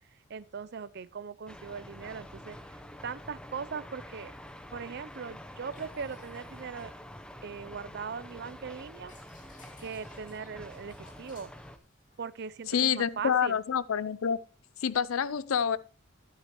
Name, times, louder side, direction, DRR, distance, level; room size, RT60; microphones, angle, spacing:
voice 1, 0.3-2.6 3.0-4.3 4.7-6.9 7.4-9.1 9.8-11.5 12.2-13.6, right 6 dB, 55° right, 0.5 m, -39 dB
sound 1, 1.5-11.8, equal, 5° left, 0.7 m, -47 dB
sound 2, 5.6-7.7 8.1-13.4, left 3 dB, 40° left, 2.3 m, -60 dB
voice 2, 12.7-14.4 14.8-15.8, left 7 dB, 90° left, 0.5 m, -27 dB
11.5 x 11.0 x 3.0 m
head